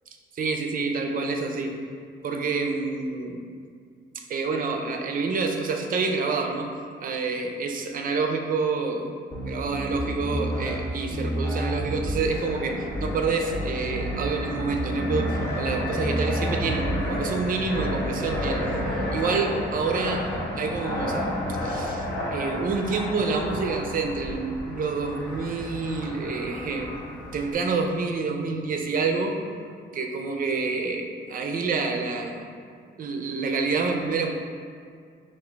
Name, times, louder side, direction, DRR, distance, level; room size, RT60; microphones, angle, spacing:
voice 1, 0.3-1.7 2.2-3.4 4.1-6.7 7.0-9.1 9.4-20.2 20.6-26.9 27.3-29.4 29.9-32.5 33.0-34.3, right 4 dB, 45° right, 3 dB, 0.4 m, -28 dB
sound 1, 9.3-10.8 11.1-12.3 12.9-13.2 13.5-15.6 15.9-17.1 17.7-18.0 18.3-18.9, equal, 15° left, 0.6 m, -30 dB
Fixed-wing aircraft airplane, 12.3-27.5, left 1 dB, 65° left, 1.1 m, -32 dB
6.0 x 2.4 x 2.2 m, 2.1 s
cardioid pair, 90°, 20 cm